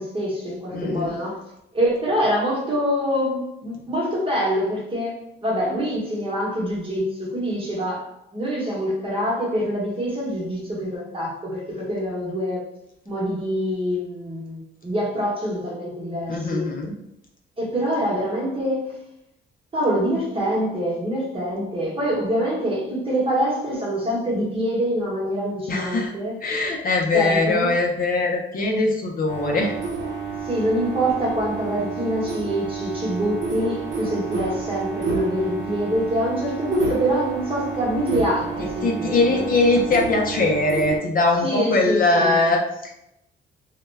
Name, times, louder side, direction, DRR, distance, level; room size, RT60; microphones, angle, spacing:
voice 1, 0.0-1.4 1.7-12.6 13.1-16.7 17.6-19.0 19.7-26.3 27.1-27.7 30.4-39.4 41.4-42.4, equal, 25° right, -4 dB, 1.0 m, -25 dB
voice 2, 0.7-1.1 16.3-16.9 25.7-26.1 26.4-29.7 38.8-43.0, left 2 dB, 45° left, 1 dB, 0.5 m, -21 dB
sound 1, 29.3-41.0, right 5 dB, 65° right, 0.7 m, -30 dB
2.2 x 2.1 x 3.2 m, 0.81 s
cardioid pair, 90°, 20 cm